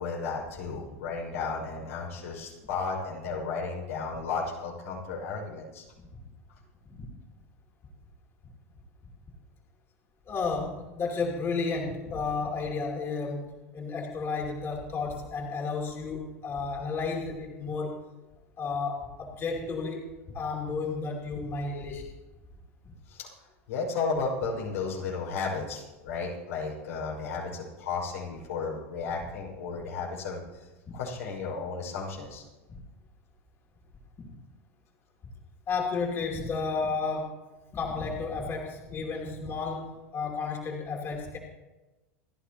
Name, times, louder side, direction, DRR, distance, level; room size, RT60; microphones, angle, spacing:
voice 1, 0.0-5.8 23.1-23.3 23.7-30.4 30.9-32.4, left 4 dB, 90° left, -3 dB, 5.8 m, -33 dB
voice 2, 10.3-18.0 18.6-22.0 22.8-22.9 30.9-31.0 34.2-34.3 35.7-37.4 37.7-41.4, left 4 dB, 35° left, 0 dB, 2.8 m, -32 dB
28.0 x 11.0 x 3.0 m, 1.1 s
supercardioid pair, 115°, 8 cm